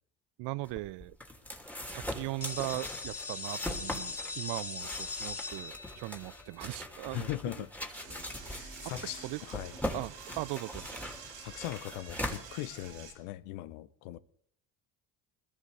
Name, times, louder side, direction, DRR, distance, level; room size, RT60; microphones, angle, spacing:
voice 1, 0.4-1.2 1.8-7.3 7.6-7.7 9.0-9.4 9.9-11.2, right 20 dB, 60° right, 0.5 m, -39 dB
sound 1, 0.6-13.1, left 1 dB, 5° left, 2.7 m, -41 dB
sound 2, 2.4-8.1, left 4 dB, 30° left, 2.5 m, -41 dB
voice 2, 7.1-7.7 8.4-9.7 11.4-14.2, left 15 dB, 75° left, 0.9 m, -40 dB
Door / Toilet flush, 7.9-13.1, right 6 dB, 85° right, 4.1 m, -48 dB
21.5 x 13.5 x 3.4 m
hypercardioid pair, 70°, 48 cm